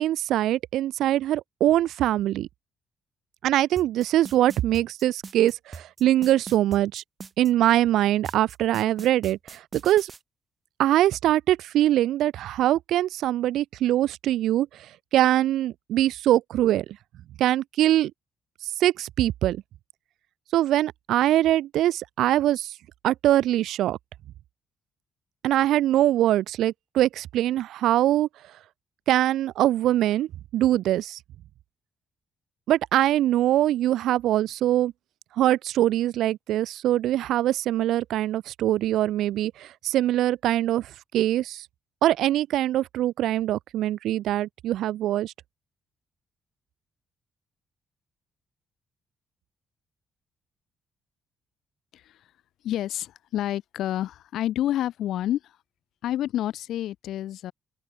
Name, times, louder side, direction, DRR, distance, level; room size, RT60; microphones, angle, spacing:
voice 1, 0.0-2.5 3.4-7.0 7.4-10.1 10.8-14.9 15.1-16.8 17.4-18.1 18.8-19.6 20.5-22.7 23.0-24.0 25.4-28.3 29.1-31.2 32.7-34.9 35.4-41.7 42.0-45.3, right 13 dB, 80° right, 0.7 m, -23 dB
sound 1, 3.8-7.5 8.2-10.2, right 5 dB, 35° right, 6.7 m, -41 dB
voice 2, 51.9-52.3 52.6-55.6 56.0-57.5, left 12 dB, 80° left, 3.8 m, -29 dB
open air
cardioid pair, 90°, 0 cm